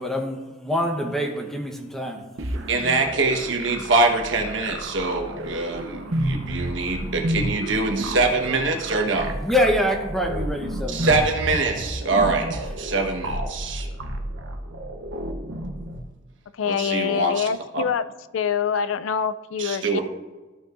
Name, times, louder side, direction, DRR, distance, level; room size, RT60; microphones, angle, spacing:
voice 1, 0.0-2.2 9.4-11.1, left 1 dB, ahead, 2 dB, 1.0 m, -25 dB
sound 1, 2.4-16.0, right 1 dB, 85° right, 0.8 m, -31 dB
voice 2, 2.7-9.3 10.9-13.9 16.6-17.5 17.7-17.8 19.6-20.0, right 3 dB, 70° right, 2 dB, 1.3 m, -24 dB
voice 3, 16.6-18.1 18.3-20.0, left 7 dB, 85° left, 14 dB, 0.4 m, -25 dB
13.5 x 6.0 x 2.6 m, 1.2 s
head